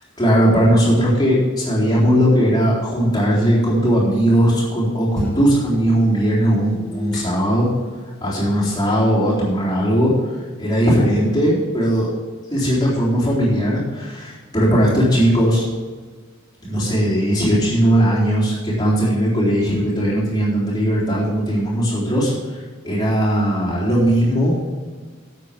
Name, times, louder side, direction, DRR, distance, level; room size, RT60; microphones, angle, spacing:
voice 1, 0.2-7.7 8.2-10.1 10.6-12.1 12.5-15.7 16.6-22.6 22.8-24.6, equal, 20° left, -8 dB, 4.1 m, -18 dB
sound 1, 3.6-8.5, left 1 dB, 5° left, 4.1 m, -34 dB
12.0 x 8.2 x 5.2 m, 1.5 s
head